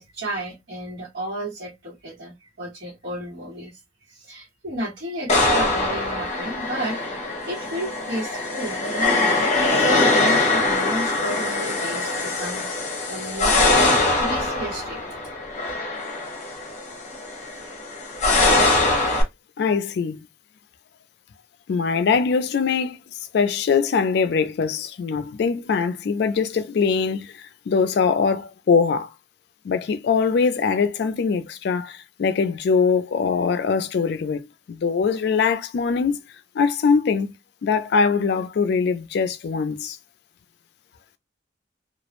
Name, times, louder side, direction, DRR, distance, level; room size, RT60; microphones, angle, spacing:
voice 1, 0.0-3.8 4.1-7.0 7.5-15.1, right 1 dB, 75° right, 1.1 m, -32 dB
sound 1, 5.3-19.2, left 2 dB, 40° left, 0.7 m, -22 dB
voice 2, 19.6-20.2 21.7-23.0 23.3-29.1 29.6-36.2 36.6-37.3 37.6-40.0, left 5 dB, 65° left, 0.3 m, -22 dB
2.3 x 2.0 x 2.9 m
head